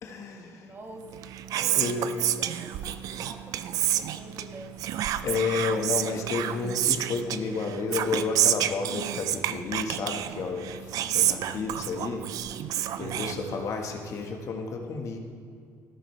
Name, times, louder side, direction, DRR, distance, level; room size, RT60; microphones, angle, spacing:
voice 1, 0.0-0.7 1.7-2.1 5.2-10.7 11.1-12.2 13.0-15.2, left 4 dB, 55° left, 2 dB, 1.5 m, -31 dB
voice 2, 0.5-1.1 1.5-4.7 10.9-11.5, right 2 dB, 35° right, 2 dB, 1.7 m, -45 dB
Whispering, 1.0-13.9, right 11 dB, 70° right, 0.5 m, -29 dB
14.0 x 12.5 x 3.3 m, 2.2 s
cardioid pair, 90°, 6 cm